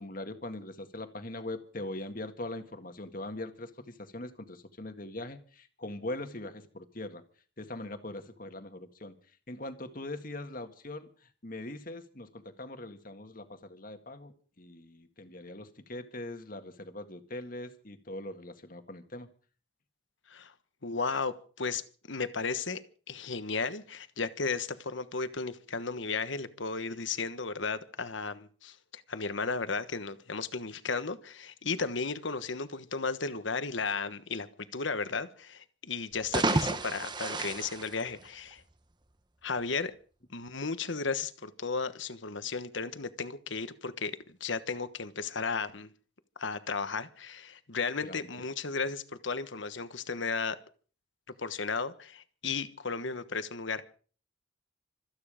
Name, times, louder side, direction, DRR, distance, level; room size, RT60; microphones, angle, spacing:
voice 1, 0.0-7.2 7.6-9.2 9.5-11.1 11.4-19.3 48.0-48.3, left 1 dB, 45° left, 8 dB, 1.8 m, -41 dB
voice 2, 20.8-21.8 22.1-22.8 23.1-38.6 39.4-39.9 40.3-45.9 46.4-50.6 51.4-53.8, left 4 dB, 70° left, 12 dB, 1.3 m, -34 dB
sound 1, 36.1-38.7, right 2 dB, 20° right, 1.1 m, -31 dB
26.0 x 9.6 x 5.1 m, 0.42 s
head